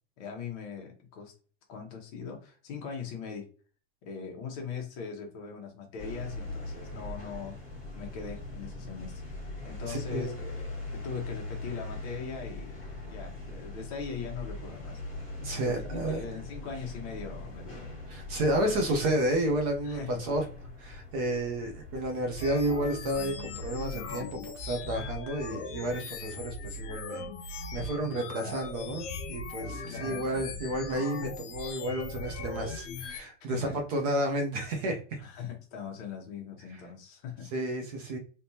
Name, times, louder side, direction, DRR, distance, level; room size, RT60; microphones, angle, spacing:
voice 1, 0.2-1.3 1.7-3.5 4.0-7.6 7.9-9.1 9.6-15.0 15.6-17.9 19.8-20.2 29.8-30.3 33.5-33.8 35.2-37.5, left 6 dB, 35° left, 1 dB, 0.9 m, -40 dB
sound 1, 6.0-24.4, left 2 dB, ahead, 1.9 m, -41 dB
voice 2, 9.9-10.4 15.4-16.2 18.1-20.4 20.8-35.0 36.7-36.8 37.5-38.2, right 1 dB, 35° right, 4 dB, 0.6 m, -31 dB
sound 2, 22.4-33.2, left 4 dB, 75° left, 0.9 m, -39 dB
3.4 x 2.9 x 2.7 m, 0.37 s
supercardioid pair, 175°, 36 cm